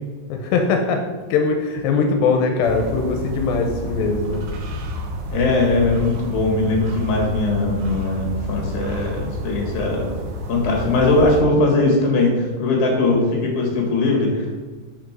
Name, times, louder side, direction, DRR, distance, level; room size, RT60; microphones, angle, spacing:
voice 1, 0.3-1.0 1.3-4.5, left 4 dB, 85° left, 3 dB, 2.5 m, -21 dB
sound 1, 2.6-11.4, right 1 dB, 70° right, 2.0 m, -29 dB
voice 2, 5.3-10.1 10.5-14.7, left 2 dB, 60° left, -1 dB, 2.9 m, -20 dB
5.8 x 5.1 x 6.0 m, 1.4 s
omnidirectional pair, 4.0 m